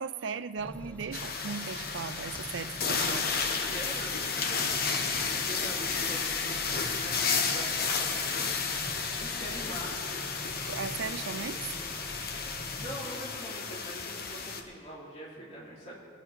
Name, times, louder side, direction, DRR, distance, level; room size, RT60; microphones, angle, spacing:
voice 1, 0.0-3.3 10.6-11.8, right 5 dB, 70° right, 13 dB, 0.5 m, -37 dB
sound 1, 0.6-13.0, equal, 5° left, 0.7 m, -45 dB
sound 2, 1.1-14.6, left 5 dB, 55° left, 1.0 m, -32 dB
voice 2, 3.6-8.6 9.1-10.3 12.3-16.0, equal, 35° left, -6 dB, 2.9 m, -44 dB
19.5 x 8.8 x 4.7 m, 2.1 s
head